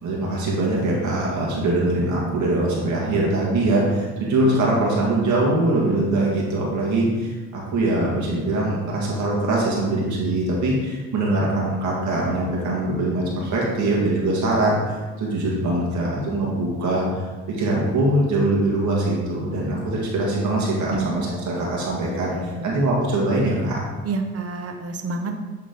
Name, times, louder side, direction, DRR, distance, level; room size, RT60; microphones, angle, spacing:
voice 1, 0.0-17.1 17.5-22.3 22.6-23.8, right 2 dB, 75° right, -4 dB, 2.0 m, -22 dB
voice 2, 20.9-21.4 22.3-22.7 24.0-25.4, right 3 dB, 50° right, 5 dB, 1.0 m, -29 dB
9.5 x 3.8 x 3.9 m, 1.4 s
cardioid pair, 90°, 30 cm